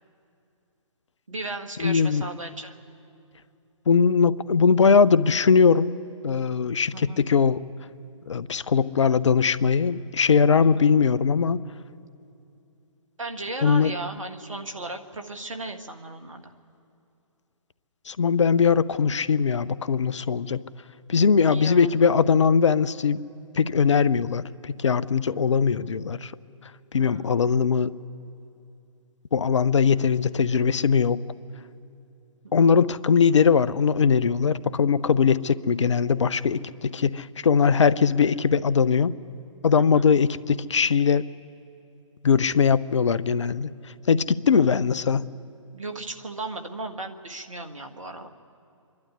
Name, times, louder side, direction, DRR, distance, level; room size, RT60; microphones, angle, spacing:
voice 1, 1.3-2.7 6.9-7.2 10.6-10.9 13.2-16.4 21.5-21.9 27.0-27.3 32.4-32.8 39.9-40.1 44.5-44.7 45.7-48.3, right 2 dB, 75° right, 5 dB, 1.6 m, -36 dB
voice 2, 1.8-2.3 3.9-5.9 6.2-7.6 8.3-11.6 13.6-13.9 18.1-20.6 21.1-23.2 23.6-26.3 26.9-27.9 29.3-31.2 32.5-39.1 39.6-41.2 42.2-43.7 44.1-45.3, left 6 dB, 65° left, 18 dB, 0.6 m, -20 dB
25.5 x 11.5 x 9.7 m, 2.7 s
figure-of-eight pair, 130°, 17 cm